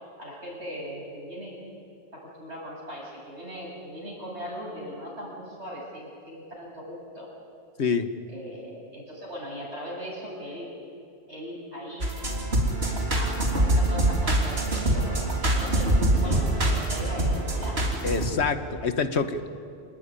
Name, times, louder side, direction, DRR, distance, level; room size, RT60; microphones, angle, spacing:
voice 1, 0.2-1.6 2.1-7.3 8.3-10.7 11.3-12.1 13.1-16.0 16.2-18.6, equal, 90° right, -3 dB, 8.4 m, -39 dB
sound 1, 12.0-18.3, right 1 dB, 70° right, 3.6 m, -24 dB
voice 2, 18.0-19.5, left 5 dB, 80° left, 10 dB, 1.5 m, -26 dB
27.5 x 18.5 x 9.8 m, 2.4 s
omnidirectional pair, 1.1 m